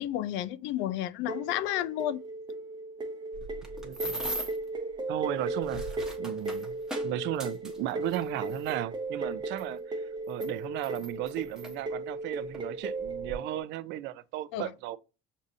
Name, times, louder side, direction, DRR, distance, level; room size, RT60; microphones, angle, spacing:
voice 1, 0.0-2.2 14.5-14.7, left 12 dB, 70° left, 0.4 m, -31 dB
sound 1, 1.3-13.6, right 2 dB, 20° right, 0.6 m, -36 dB
sound 2, 3.3-4.7 5.4-8.7 9.6-9.7 10.3-11.7 12.5-12.7 13.0-13.3, right 1 dB, 5° right, 1.0 m, -39 dB
voice 2, 3.8-4.3 5.1-6.8 7.0-15.0, right 14 dB, 65° right, 0.4 m, -35 dB
6.3 x 2.7 x 2.6 m
cardioid pair, 135°, 20 cm